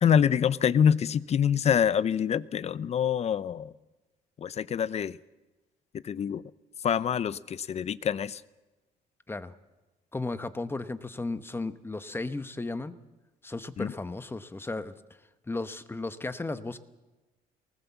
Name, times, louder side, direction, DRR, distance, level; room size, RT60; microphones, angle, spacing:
voice 1, 0.0-3.7 4.4-5.2 6.0-6.4 6.8-8.4 13.8-13.9, left 8 dB, 40° left, 17 dB, 0.7 m, -25 dB
voice 2, 10.1-12.9 13.4-14.9 15.5-16.8, left 2 dB, 15° left, 11 dB, 1.0 m, -35 dB
23.5 x 19.5 x 7.2 m, 1.2 s
cardioid pair, 110°, 17 cm